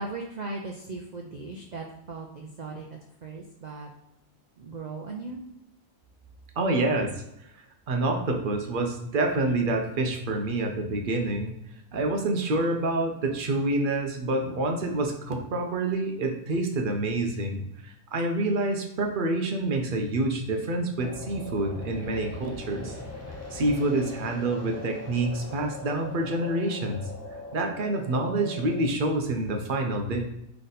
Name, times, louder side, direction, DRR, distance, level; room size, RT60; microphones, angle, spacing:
voice 1, 0.0-3.9 4.6-5.4, right 3 dB, 80° right, 1 dB, 0.3 m, -38 dB
voice 2, 6.6-7.5 7.9-11.5 11.9-22.9 23.5-27.0 27.5-30.2, right 2 dB, 50° right, 3 dB, 0.7 m, -27 dB
sound 1, 21.0-28.8, left 2 dB, 20° left, 0.5 m, -41 dB
3.9 x 3.4 x 4.0 m, 0.82 s
omnidirectional pair, 1.4 m